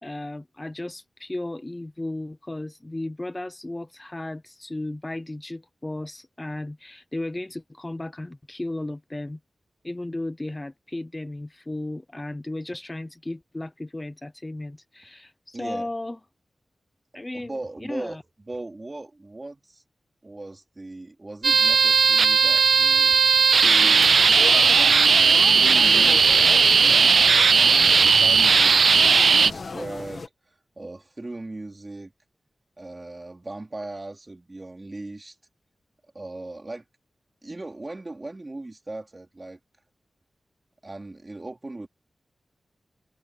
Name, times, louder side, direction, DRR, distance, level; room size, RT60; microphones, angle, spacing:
voice 1, 0.0-9.4 9.8-16.2 17.1-18.2, left 1 dB, 20° left, 0.6 m, -35 dB
voice 2, 15.5-15.9 17.3-18.2 18.5-19.8 20.2-24.2 24.7-25.1 25.5-26.5 26.9-27.6 27.9-30.3 30.8-32.1 32.8-35.4 36.1-36.8 37.4-39.6 40.8-41.9, right 2 dB, 25° right, 3.7 m, -38 dB
sound 1, 21.4-29.5, right 5 dB, 75° right, 0.4 m, -17 dB
sound 2, 24.0-30.3, left 4 dB, 55° left, 1.8 m, -36 dB
wide cardioid pair, 110°, 0 cm